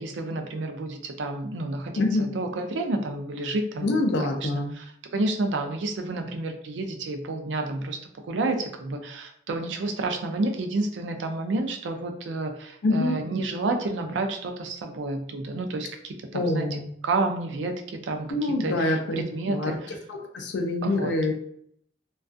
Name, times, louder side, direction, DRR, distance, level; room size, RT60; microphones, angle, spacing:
voice 1, 0.0-4.0 4.4-8.0 8.3-19.9 20.8-21.1, right 2 dB, 90° right, 5 dB, 0.4 m, -30 dB
voice 2, 2.0-2.3 3.8-4.8 12.8-13.2 16.3-16.9 18.3-19.2 19.5-19.8 20.1-21.3, left 2 dB, 70° left, 3 dB, 0.4 m, -25 dB
2.3 x 2.3 x 2.4 m, 0.69 s
head